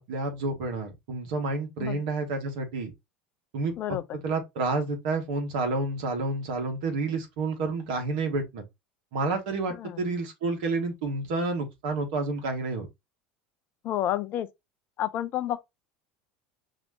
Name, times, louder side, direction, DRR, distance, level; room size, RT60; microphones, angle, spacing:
voice 1, 0.0-2.9 3.5-4.0 4.2-8.6 9.1-12.9, right 3 dB, 55° right, 1.7 m, -29 dB
voice 2, 13.8-14.5 15.0-15.6, left 12 dB, 40° left, 0.5 m, -29 dB
5.4 x 2.9 x 2.8 m
figure-of-eight pair, 75°, 5 cm